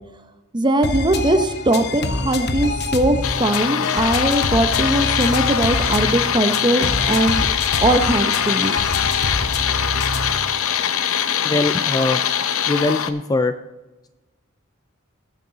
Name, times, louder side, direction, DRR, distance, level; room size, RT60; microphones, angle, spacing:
voice 1, 0.5-7.5 7.8-8.7, right 1 dB, 20° right, 8 dB, 0.8 m, -20 dB
sound 1, 0.8-10.4, left 3 dB, 50° left, 0.9 m, -26 dB
sound 2, 3.2-13.1, left 9 dB, 75° left, 0.7 m, -22 dB
voice 2, 11.4-12.2 12.7-13.5, left 2 dB, 20° left, 10 dB, 0.3 m, -21 dB
18.5 x 6.7 x 4.0 m, 1.1 s
head